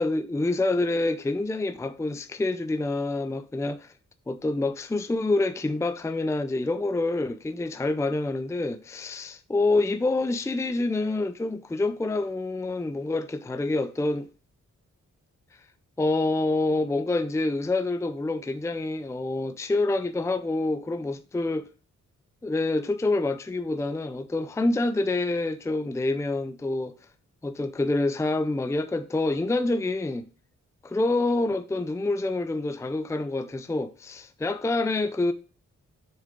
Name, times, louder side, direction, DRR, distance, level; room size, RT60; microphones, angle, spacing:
voice 1, 0.0-3.9 4.3-14.3 16.0-21.7 22.4-27.0 27.4-30.3 30.8-35.3, left 2 dB, 10° left, 0.5 m, -27 dB
6.9 x 6.7 x 3.7 m
wide cardioid pair, 155°, 30 cm